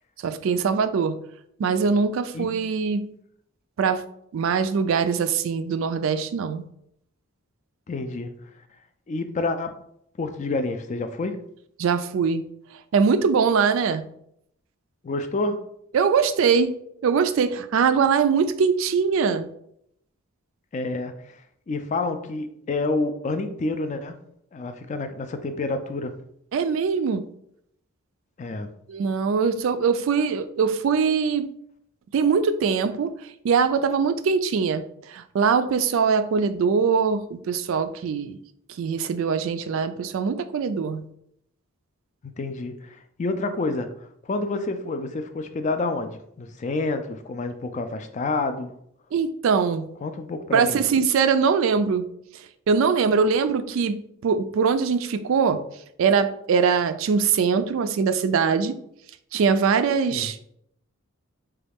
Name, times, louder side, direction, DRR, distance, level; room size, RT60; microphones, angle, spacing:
voice 1, 0.2-1.2 1.6-3.1 3.8-4.0 4.3-6.6 11.8-12.4 12.9-14.0 15.9-16.7 17.0-19.5 26.5-27.3 28.9-31.5 32.1-33.1 33.4-38.4 38.8-41.1 49.1-49.9 50.5-52.0 52.7-55.6 56.0-58.8 59.3-60.5, right 5 dB, 65° right, 12 dB, 0.3 m, -22 dB
voice 2, 7.9-8.3 9.1-9.8 10.2-11.4 15.0-15.6 20.7-21.4 21.7-24.2 24.5-26.1 28.4-28.7 42.2-43.9 44.2-48.7 50.0-50.8 60.1-60.3, left 3 dB, 35° left, 9 dB, 0.3 m, -28 dB
4.1 x 2.3 x 3.4 m, 0.72 s
head